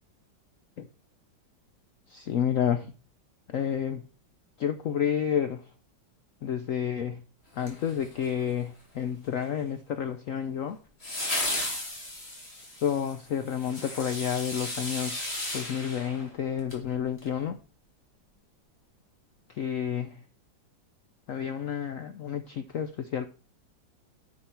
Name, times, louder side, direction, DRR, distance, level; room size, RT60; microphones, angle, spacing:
voice 1, 2.1-2.9 3.5-4.0 4.6-5.6 6.4-7.2 7.6-10.8 12.8-17.6 19.5-20.2 21.3-23.3, left 8 dB, 75° left, 0.7 m, -30 dB
sound 1, 7.6-8.5 11.0-16.8 17.2-17.3, left 1 dB, 30° left, 3.3 m, -35 dB
10.5 x 6.4 x 4.4 m
omnidirectional pair, 2.0 m